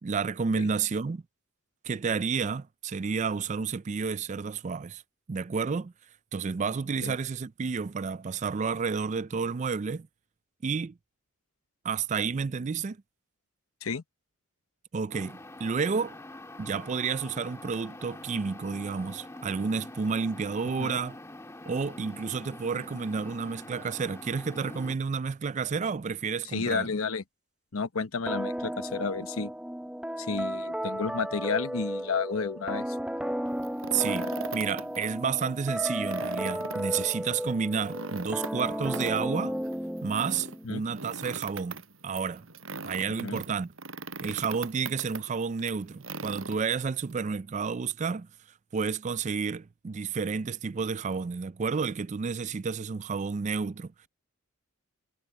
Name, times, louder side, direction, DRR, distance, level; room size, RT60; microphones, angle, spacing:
voice 1, 0.0-1.2 1.8-5.0 5.3-5.9 6.3-10.1 10.6-10.9 11.8-13.0 14.9-16.2 16.6-21.2 21.7-26.9 33.9-39.6 40.0-42.5 42.8-43.7 44.2-48.3 48.7-53.9, right 5 dB, 35° right, 0.4 m, -31 dB
sound 1, 15.1-24.9, left 2 dB, 15° left, 2.0 m, -45 dB
voice 2, 26.5-27.2 27.7-29.5 30.2-32.8 40.6-40.8 43.2-43.4, left 5 dB, 90° left, 1.0 m, -31 dB
sound 2, 28.3-40.7, equal, 5° right, 0.8 m, -34 dB
sound 3, 33.5-35.1 35.4-35.5 35.9-47.1, right 3 dB, 75° right, 6.3 m, -40 dB
head